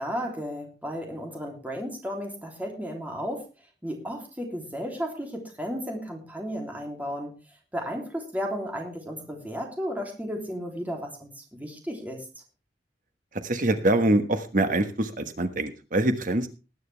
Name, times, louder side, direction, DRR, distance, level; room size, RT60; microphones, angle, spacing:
voice 1, 0.0-3.5 3.8-7.3 7.7-12.2, equal, 10° right, 1 dB, 3.0 m, -34 dB
voice 2, 13.4-16.5, right 1 dB, 50° right, 8 dB, 1.3 m, -24 dB
20.0 x 9.3 x 3.3 m, 0.30 s
head